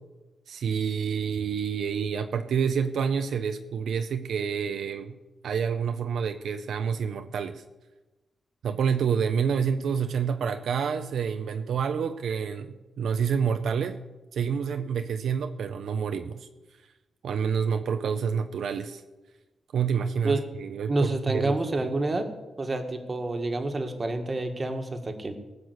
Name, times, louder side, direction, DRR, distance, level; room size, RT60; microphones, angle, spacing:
voice 1, 0.5-5.2 5.4-7.6 8.6-14.0 14.3-16.5 17.2-19.0 19.7-21.6, right 6 dB, 80° right, 8 dB, 0.7 m, -28 dB
voice 2, 20.9-22.3 22.6-25.3, right 2 dB, 30° right, 5 dB, 1.8 m, -28 dB
18.5 x 6.1 x 8.1 m, 1.1 s
cardioid pair, 105°, 0 cm